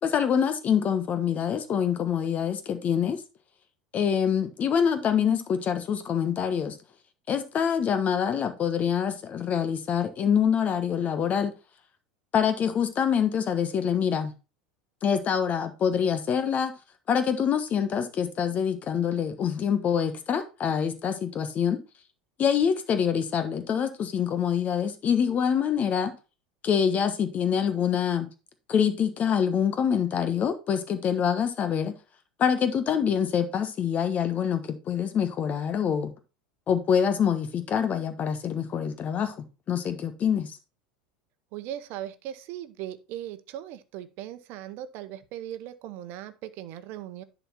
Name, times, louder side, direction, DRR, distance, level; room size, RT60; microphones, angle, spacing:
voice 1, 0.0-3.2 3.9-6.8 7.3-11.5 12.3-14.3 15.0-16.7 17.1-21.8 22.4-26.1 26.6-28.3 28.7-31.9 32.4-36.1 36.7-39.4 39.7-40.6, left 8 dB, 35° left, 1.2 m, -25 dB
voice 2, 41.5-47.2, right 12 dB, 50° right, 1.0 m, -38 dB
11.0 x 4.2 x 4.2 m
figure-of-eight pair, 80°, 4 cm